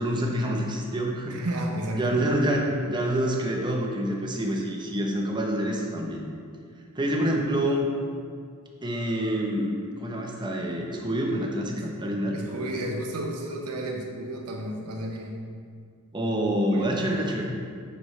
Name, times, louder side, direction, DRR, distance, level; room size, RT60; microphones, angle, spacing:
voice 1, 0.0-1.4 1.9-6.3 6.9-7.9 8.8-12.4 16.1-17.6, equal, 20° right, 0 dB, 0.8 m, -27 dB
voice 2, 1.3-2.3 11.8-11.9 12.3-15.4 16.7-17.2, right 1 dB, 85° right, 1 dB, 1.0 m, -32 dB
7.6 x 6.1 x 3.3 m, 2.1 s
head